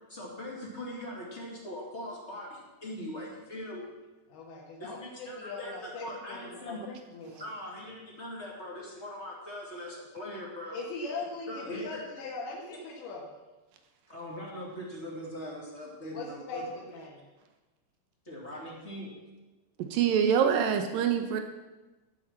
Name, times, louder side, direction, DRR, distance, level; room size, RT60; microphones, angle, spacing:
voice 1, 0.1-3.8 4.8-5.7 6.0-6.8 7.4-10.8 11.5-12.0 14.1-16.6 18.2-19.1, left 1 dB, 25° left, -3 dB, 1.8 m, -41 dB
voice 2, 4.3-7.4 10.7-13.3 16.1-17.2, left 3 dB, 90° left, -4 dB, 3.8 m, -40 dB
voice 3, 19.9-21.4, right 8 dB, 80° right, 6 dB, 2.0 m, -25 dB
14.0 x 6.0 x 7.4 m, 1.2 s
omnidirectional pair, 4.9 m